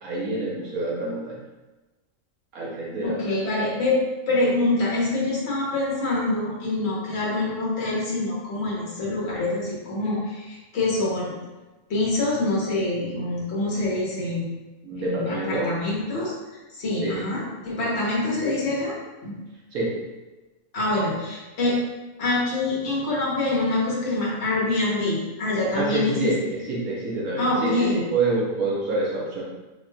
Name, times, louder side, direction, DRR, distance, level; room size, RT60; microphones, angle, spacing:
voice 1, 0.0-1.4 2.5-3.3 14.8-15.7 17.0-17.2 19.7-20.0 25.7-29.4, right 2 dB, 85° right, -5 dB, 1.4 m, -27 dB
voice 2, 3.0-4.0 4.3-11.3 11.9-14.5 15.0-16.3 16.8-19.0 19.2-19.3 20.7-21.8 22.2-26.3 27.4-28.0, left 2 dB, 55° left, -6 dB, 1.2 m, -25 dB
4.8 x 2.9 x 2.3 m, 1.1 s
omnidirectional pair, 1.5 m